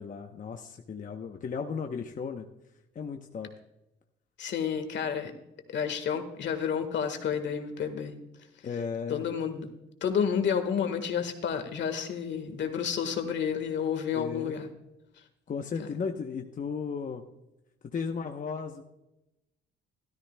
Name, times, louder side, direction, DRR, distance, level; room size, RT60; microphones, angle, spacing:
voice 1, 0.0-2.5 2.9-3.5 8.6-9.3 14.1-14.6 15.5-17.2 17.9-18.8, left 5 dB, 40° left, 4 dB, 0.8 m, -35 dB
voice 2, 4.4-5.3 5.7-8.2 9.1-9.7 10.0-14.7 15.8-15.9, left 7 dB, 65° left, 8 dB, 1.5 m, -30 dB
13.0 x 13.0 x 2.2 m, 0.93 s
cardioid pair, 90°, 20 cm